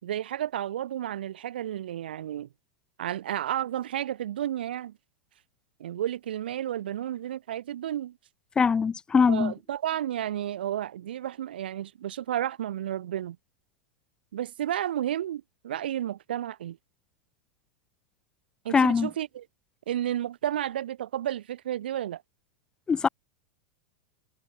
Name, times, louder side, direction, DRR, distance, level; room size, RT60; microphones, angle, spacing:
voice 1, 0.0-2.5 3.0-5.0 5.8-8.2 9.3-13.4 14.3-16.8 18.6-19.4 19.9-22.2, right 11 dB, 85° right, 5.8 m, -32 dB
voice 2, 8.6-9.5 18.7-19.1 22.9-23.1, left 6 dB, 15° left, 1.2 m, -22 dB
supercardioid pair, 135°, 5 cm